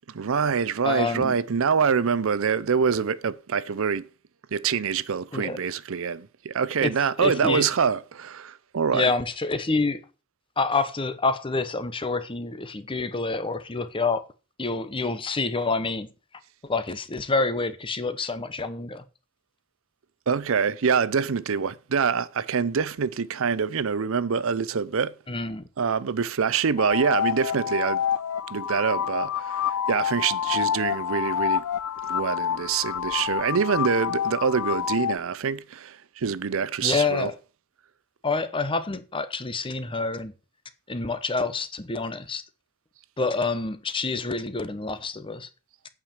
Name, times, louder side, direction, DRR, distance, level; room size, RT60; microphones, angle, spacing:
voice 1, 0.1-4.1 4.5-9.1 20.3-25.1 25.8-28.0 28.5-31.6 32.0-37.3, right 6 dB, 65° right, 0.6 m, -25 dB
voice 2, 0.8-1.4 5.3-5.6 6.8-7.6 8.9-10.0 10.6-14.2 14.6-16.1 16.6-19.0 25.3-25.6 36.8-37.3 38.2-40.3 40.9-42.4 43.2-45.5, left 3 dB, 25° left, 0.9 m, -27 dB
sound 1, 26.8-35.2, left 9 dB, 85° left, 0.4 m, -28 dB
9.0 x 4.9 x 7.2 m
head